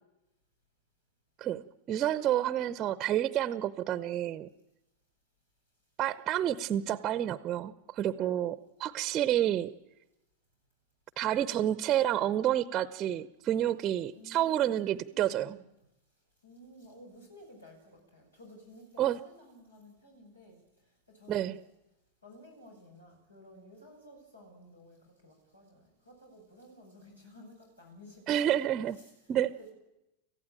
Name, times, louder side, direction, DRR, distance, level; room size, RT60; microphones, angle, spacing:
voice 1, 1.4-4.5 6.0-9.7 11.2-15.6 19.0-19.2 21.3-21.6 28.3-29.0 29.3-29.5, right 11 dB, 30° right, 14 dB, 0.8 m, -29 dB
voice 2, 14.1-15.7 16.4-20.6 21.1-21.6 22.2-28.6 28.9-29.7, equal, 80° left, 0 dB, 6.5 m, -54 dB
26.0 x 15.5 x 8.9 m, 0.96 s
figure-of-eight pair, 90°, 0 cm